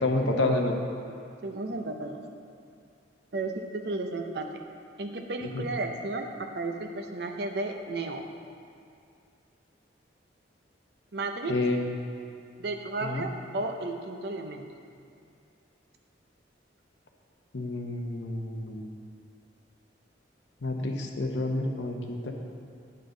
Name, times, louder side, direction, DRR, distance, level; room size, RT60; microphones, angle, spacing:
voice 1, 0.0-0.8 5.5-5.7 11.5-11.9 13.0-13.2 17.5-18.9 20.6-22.3, left 2 dB, 75° left, 2 dB, 0.8 m, -29 dB
voice 2, 1.4-2.2 3.3-4.6 5.0-8.2 11.1-11.6 12.6-14.7, right 2 dB, 60° right, 4 dB, 0.6 m, -33 dB
9.2 x 6.6 x 3.8 m, 2.4 s
head